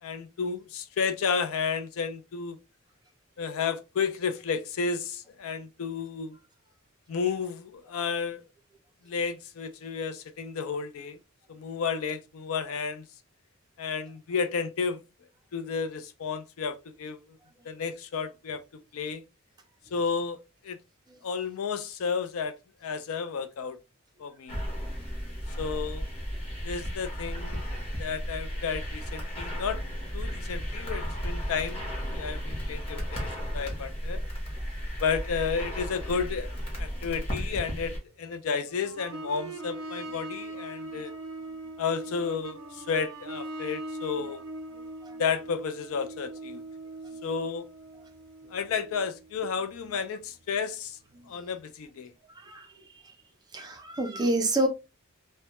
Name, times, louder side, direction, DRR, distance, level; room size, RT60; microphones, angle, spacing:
voice 1, 0.0-2.6 3.4-6.4 7.1-8.4 9.0-11.2 11.5-13.1 13.8-15.0 15.5-17.2 17.6-19.2 19.9-20.8 21.2-22.5 22.8-23.8 24.2-24.6 25.6-26.1 26.6-27.7 28.0-29.8 30.1-34.2 35.0-41.1 41.8-44.4 45.2-46.6 47.2-47.7 48.5-51.0 51.3-52.1, left 6 dB, 75° left, 0.4 m, -32 dB
sound 1, 24.5-38.0, equal, 30° left, 0.9 m, -34 dB
sound 2, 38.7-50.0 51.2-51.3, right 2 dB, 70° right, 0.6 m, -41 dB
voice 2, 52.3-52.7 53.5-54.7, right 1 dB, 20° right, 0.4 m, -28 dB
2.2 x 2.1 x 2.8 m
head